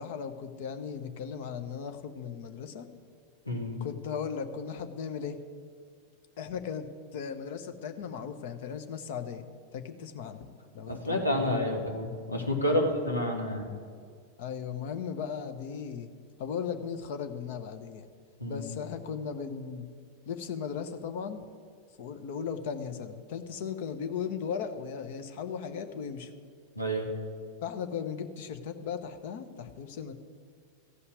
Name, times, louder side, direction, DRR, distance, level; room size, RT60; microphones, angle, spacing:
voice 1, 0.0-2.9 3.8-5.4 6.4-6.9 7.1-9.4 9.7-10.5 10.7-11.5 12.7-12.9 14.4-16.1 16.4-18.0 18.5-19.9 20.3-21.4 22.0-26.3 27.6-30.1, left 7 dB, 50° left, 8 dB, 0.9 m, -37 dB
voice 2, 3.5-3.8 10.9-13.7 18.4-18.7 26.8-27.1, equal, 85° left, 1 dB, 1.9 m, -29 dB
14.5 x 5.6 x 9.4 m, 2.1 s
figure-of-eight pair, 90°, 0 cm